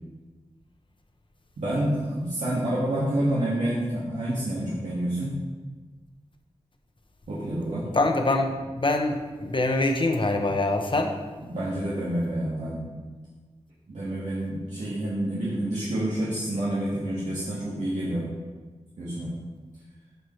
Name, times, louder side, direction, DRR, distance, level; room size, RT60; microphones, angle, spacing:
voice 1, 1.6-5.3 7.3-7.9 11.4-12.9 13.9-18.3 19.0-19.3, right 1 dB, 85° right, -8 dB, 1.8 m, -28 dB
voice 2, 7.9-11.1, left 2 dB, 45° left, 4 dB, 1.0 m, -24 dB
13.5 x 4.8 x 3.2 m, 1.3 s
wide cardioid pair, 60°, 12 cm